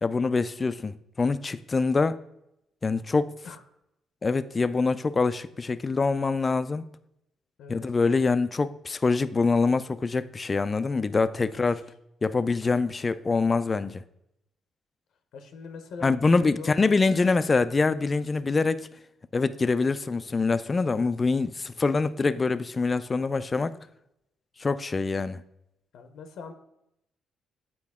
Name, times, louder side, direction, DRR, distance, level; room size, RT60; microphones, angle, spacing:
voice 1, 0.0-2.2 2.8-3.3 4.2-6.8 7.7-11.8 12.2-14.0 16.0-18.9 19.3-23.7 24.6-25.4, left 4 dB, 30° left, 0.3 m, -25 dB
voice 2, 7.6-8.0 11.5-11.7 15.3-16.2 16.5-16.7 20.8-21.1 25.9-26.5, left 5 dB, 75° left, 0.7 m, -42 dB
8.3 x 4.5 x 3.5 m
cardioid pair, 90°, 0 cm